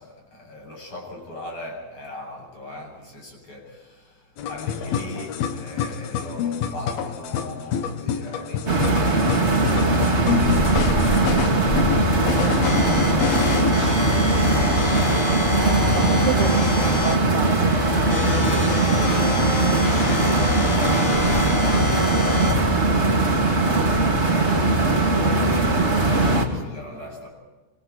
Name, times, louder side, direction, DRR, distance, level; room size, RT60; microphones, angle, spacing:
voice 1, 0.0-13.7 14.7-15.6 16.6-16.9 19.8-24.5 25.1-27.3, left 1 dB, 40° left, 0 dB, 9.1 m, -39 dB
sound 1, 4.4-13.7, left 8 dB, 85° left, 3.3 m, -27 dB
sound 2, 8.7-26.4, right 2 dB, 20° right, 2.7 m, -20 dB
sound 3, 12.6-22.6, left 4 dB, 70° left, 4.8 m, -29 dB
voice 2, 15.9-19.3, right 7 dB, 70° right, 4 dB, 3.1 m, -32 dB
29.0 x 26.5 x 4.5 m, 1.2 s
omnidirectional pair, 4.3 m